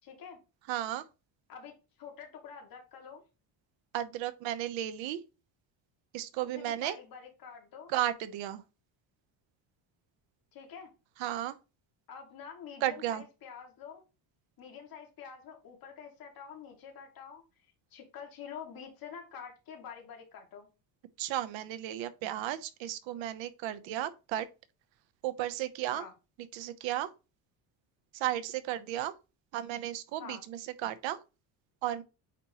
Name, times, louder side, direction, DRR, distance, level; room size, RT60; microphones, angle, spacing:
voice 1, 0.0-0.4 1.5-3.2 6.5-7.9 10.5-10.9 12.1-14.0 14.6-17.4 17.9-20.7 25.9-26.1 30.2-30.4, left 7 dB, 45° left, 2.3 m, -47 dB
voice 2, 0.7-1.0 3.9-5.2 6.1-7.0 7.9-8.6 11.2-11.6 12.8-13.2 21.2-24.5 25.2-26.0 26.5-27.1 28.1-29.1 29.5-31.2 31.8-32.0, right 13 dB, 75° right, 1.0 m, -34 dB
8.9 x 4.2 x 3.0 m
cardioid pair, 145°, 46 cm